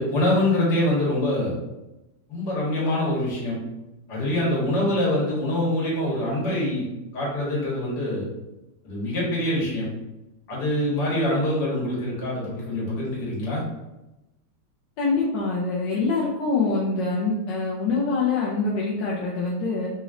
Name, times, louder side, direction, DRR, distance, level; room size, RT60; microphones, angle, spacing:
voice 1, 0.0-1.6 2.3-3.6 4.1-6.9 7.1-8.3 8.8-9.9 10.5-13.6, left 1 dB, 55° left, -5 dB, 1.8 m, -24 dB
voice 2, 15.0-19.9, left 3 dB, 70° left, -4 dB, 1.1 m, -25 dB
4.0 x 3.1 x 2.5 m, 0.97 s
omnidirectional pair, 2.3 m